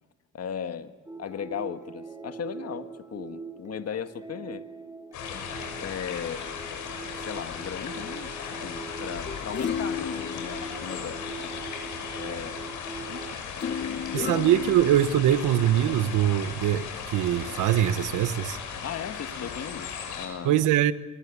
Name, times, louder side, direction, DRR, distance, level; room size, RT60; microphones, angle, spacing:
voice 1, 0.3-0.9 1.2-4.6 5.3-5.5 5.8-6.5 7.2-8.3 8.6-11.8 12.2-12.7 13.1-14.4 18.8-20.6, left 8 dB, 55° left, 1.6 m, -37 dB
sound 1, 1.0-13.3, right 3 dB, 10° right, 3.0 m, -42 dB
sound 2, 5.1-20.3, left 6 dB, 85° left, 6.6 m, -37 dB
sound 3, 9.3-11.6 13.6-15.6 16.2-16.3, left 7 dB, 35° left, 1.1 m, -34 dB
voice 2, 14.1-18.6 20.4-20.9, right 11 dB, 85° right, 1.2 m, -23 dB
25.5 x 22.0 x 8.5 m
cardioid pair, 90°, 30 cm